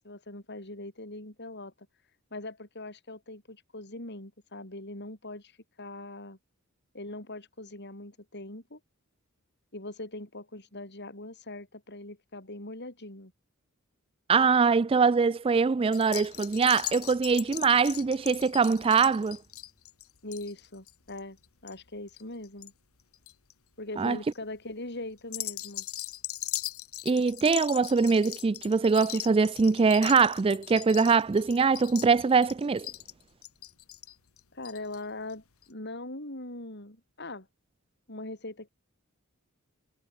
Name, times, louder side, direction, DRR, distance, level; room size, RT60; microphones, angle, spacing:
voice 1, 0.0-1.9 2.3-6.4 6.9-8.8 9.7-13.3 20.2-21.4 21.6-22.7 23.8-25.9 34.5-37.5 38.1-38.7, left 2 dB, 50° left, 6.1 m, -41 dB
voice 2, 14.3-19.4 24.0-24.2 27.1-32.9, right 5 dB, 25° right, 0.3 m, -23 dB
sound 1, 15.9-22.7 23.0-23.5 24.0-24.4 25.2-35.0 35.3-35.4 35.6-35.7, left 15 dB, 85° left, 1.6 m, -40 dB
head